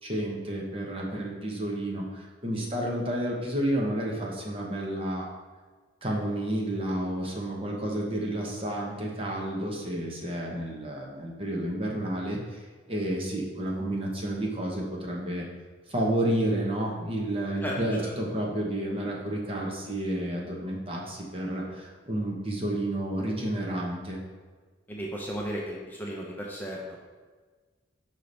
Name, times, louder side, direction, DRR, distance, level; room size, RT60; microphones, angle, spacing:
voice 1, 0.0-5.3 6.0-12.6 12.9-15.5 15.9-24.2, right 1 dB, 30° right, -2 dB, 1.1 m, -30 dB
voice 2, 17.6-18.1 24.9-27.0, equal, 10° left, -3 dB, 0.7 m, -35 dB
5.7 x 5.1 x 4.0 m, 1.4 s
head